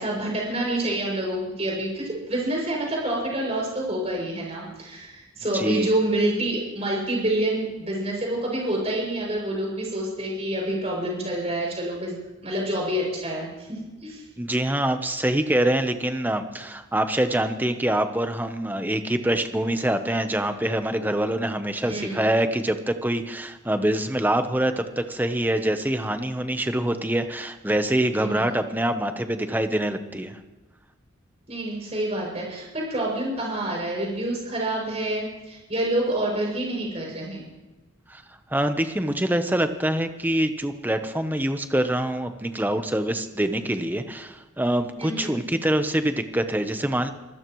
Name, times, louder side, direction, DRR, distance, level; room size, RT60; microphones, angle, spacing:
voice 1, 0.0-12.1 12.4-14.2 21.8-22.2 28.2-28.4 31.5-37.5 45.0-45.3, right 1 dB, 30° right, -2 dB, 6.8 m, -27 dB
voice 2, 5.5-5.9 14.4-30.4 38.1-38.2 38.5-47.1, right 1 dB, 10° right, 8 dB, 0.9 m, -25 dB
25.0 x 16.0 x 3.1 m, 1.2 s
head